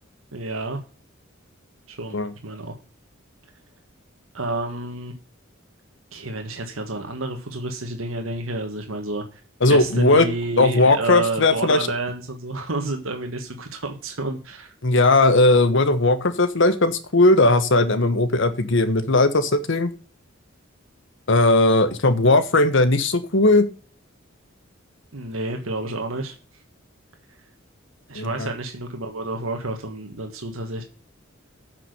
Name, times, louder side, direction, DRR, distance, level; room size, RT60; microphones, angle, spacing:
voice 1, 0.3-0.8 1.9-2.7 4.3-5.1 6.1-9.4 9.7-14.7 25.1-26.3 28.1-30.8, right 2 dB, 85° right, 4 dB, 1.6 m, -30 dB
voice 2, 9.6-10.3 10.6-11.8 14.8-19.9 21.3-23.7 28.1-28.5, left 2 dB, 65° left, 12 dB, 1.2 m, -18 dB
8.7 x 6.0 x 6.5 m, 0.38 s
head